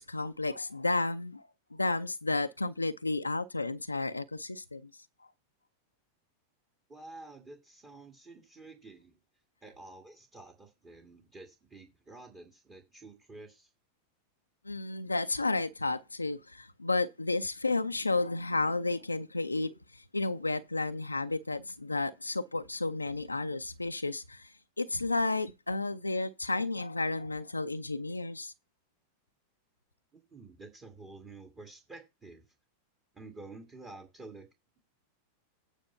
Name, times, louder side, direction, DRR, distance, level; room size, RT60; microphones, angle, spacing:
voice 1, 0.0-1.4 1.7-4.9 14.7-24.5 24.8-28.5, left 2 dB, 80° left, 0.5 m, -32 dB
voice 2, 6.9-9.2 9.6-13.7 30.3-32.4 33.1-34.5, right 2 dB, 20° right, 1.9 m, -50 dB
9.0 x 5.0 x 5.6 m
figure-of-eight pair, 90°, 0 cm